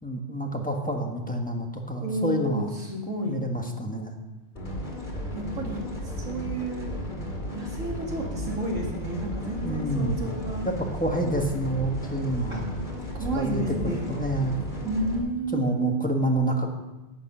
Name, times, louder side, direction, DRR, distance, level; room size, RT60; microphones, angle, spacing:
voice 1, 0.0-2.7 3.3-4.2 9.6-10.1 10.6-12.6 13.4-14.6 15.5-16.7, right 1 dB, 5° left, 1 dB, 1.2 m, -28 dB
voice 2, 2.0-3.4 4.7-4.8 5.3-6.9 7.5-10.7 12.5-12.6 13.1-14.2 14.8-16.0, right 1 dB, 85° right, -1 dB, 2.8 m, -31 dB
sound 1, 4.6-15.2, left 1 dB, 35° left, 2.2 m, -34 dB
11.5 x 8.4 x 5.5 m, 1.1 s
omnidirectional pair, 1.3 m